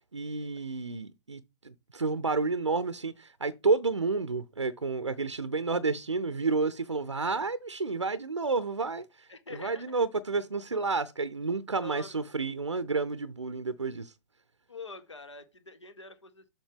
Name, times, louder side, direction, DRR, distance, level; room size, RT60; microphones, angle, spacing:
voice 1, 0.1-9.3 9.6-14.1, right 4 dB, 90° right, 0.5 m, -30 dB
voice 2, 9.3-10.0 10.7-10.9 11.8-12.2 14.7-16.5, left 3 dB, 85° left, 0.9 m, -45 dB
7.3 x 5.2 x 3.4 m
figure-of-eight pair, 115°, 15 cm